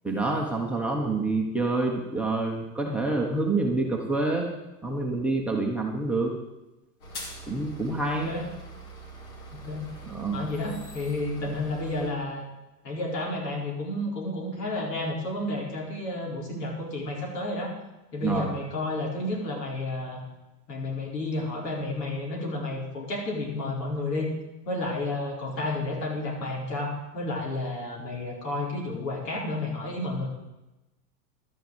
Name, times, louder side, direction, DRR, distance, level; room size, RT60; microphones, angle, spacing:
voice 1, 0.0-4.5 4.8-6.3 7.5-8.3 10.1-10.4 18.2-18.5, right 2 dB, ahead, 1 dB, 0.9 m, -27 dB
sound 1, 7.0-12.1, right 2 dB, 60° left, 3.4 m, -43 dB
voice 2, 8.1-8.5 9.5-9.9 10.3-12.4 12.8-17.7 18.1-20.2 20.7-24.3 24.6-30.3, left 2 dB, 75° left, -1 dB, 4.6 m, -31 dB
12.0 x 6.8 x 7.9 m, 1.0 s
supercardioid pair, 150°, 49 cm